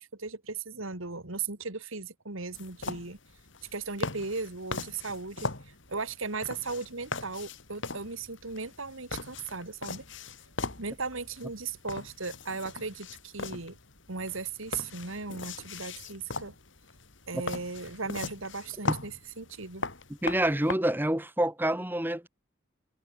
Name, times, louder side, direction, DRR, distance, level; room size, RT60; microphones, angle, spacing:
voice 1, 0.0-3.2 3.7-5.5 5.9-10.0 10.8-13.8 14.1-16.5 17.3-19.8, right 4 dB, 70° right, 2.5 m, -37 dB
sound 1, 2.5-20.7, left 3 dB, 60° left, 3.7 m, -39 dB
voice 2, 20.2-22.3, right 1 dB, 10° right, 1.6 m, -27 dB
head